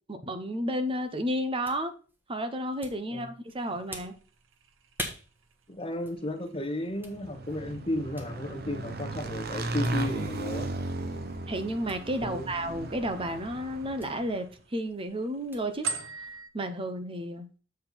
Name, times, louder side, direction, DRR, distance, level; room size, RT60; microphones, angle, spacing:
voice 1, 0.1-1.9 2.3-4.1 11.5-14.5 14.7-15.9 16.5-17.5, equal, 30° right, 8 dB, 1.0 m, -32 dB
sound 1, 0.8-16.5, equal, 10° right, 1.5 m, -48 dB
sound 2, 3.5-16.5, right 5 dB, 80° right, 0.8 m, -46 dB
voice 2, 5.7-10.7 12.2-12.5, left 1 dB, 30° left, 5 dB, 1.2 m, -34 dB
Motorcycle / Engine, 7.0-14.3, right 2 dB, 55° right, 0.9 m, -36 dB
7.5 x 4.4 x 5.8 m, 0.37 s
head